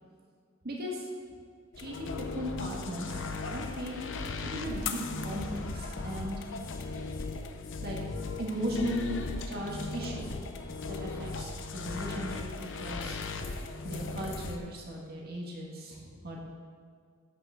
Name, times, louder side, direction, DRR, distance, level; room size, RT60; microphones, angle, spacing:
voice 1, 0.6-1.1 1.8-3.2 3.5-4.1 4.4-6.4 7.8-8.0 8.4-13.2 13.8-16.4, equal, 50° right, -2 dB, 1.6 m, -37 dB
sound 1, 1.7-14.6, left 3 dB, 60° left, 0.6 m, -37 dB
13.0 x 5.9 x 3.7 m, 2.1 s
head